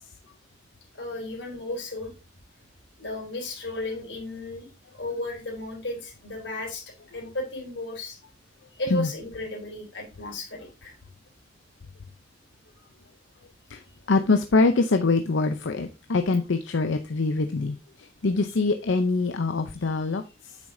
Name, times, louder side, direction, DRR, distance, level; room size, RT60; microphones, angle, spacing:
voice 1, 0.9-2.1 3.0-8.2 8.7-10.9 19.8-19.9, left 2 dB, 70° left, 1 dB, 3.6 m, -34 dB
voice 2, 14.1-20.6, left 3 dB, 90° left, 7 dB, 0.6 m, -24 dB
8.5 x 6.4 x 2.7 m, 0.29 s
head